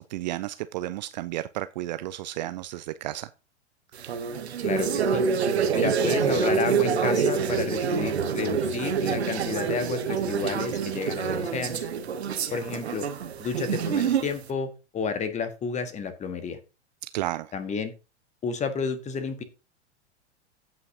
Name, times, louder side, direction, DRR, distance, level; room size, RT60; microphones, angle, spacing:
voice 1, 0.0-3.3 17.0-17.5, right 15 dB, 40° right, 0.5 m, -32 dB
sound 1, 3.9-14.4, right 6 dB, 65° right, 1.3 m, -26 dB
voice 2, 4.6-5.2 5.7-11.9 12.5-13.1 13.4-16.6 17.5-17.9 18.4-19.4, left 5 dB, 20° left, 1.6 m, -31 dB
15.5 x 5.8 x 2.8 m
figure-of-eight pair, 95°, 35 cm